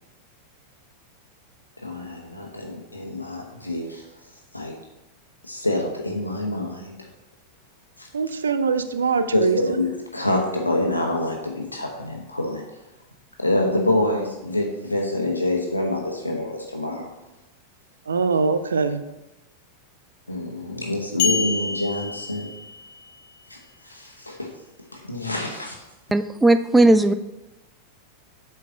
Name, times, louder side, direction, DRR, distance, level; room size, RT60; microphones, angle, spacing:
voice 1, 1.8-4.7 5.4-7.0 8.0-8.1 9.3-9.9 10.1-12.6 13.4-17.2 20.3-22.5 23.5-24.5 24.9-25.8, left 1 dB, 85° left, 1 dB, 1.0 m, -26 dB
voice 2, 8.1-9.8 18.1-19.0, right 5 dB, 70° right, 11 dB, 0.5 m, -23 dB
sound 1, 21.2-23.0, left 5 dB, 50° left, 0.8 m, -27 dB
voice 3, 26.1-27.1, right 2 dB, 5° right, 11 dB, 0.4 m, -16 dB
7.9 x 4.5 x 3.7 m, 0.98 s
figure-of-eight pair, 90°, 0 cm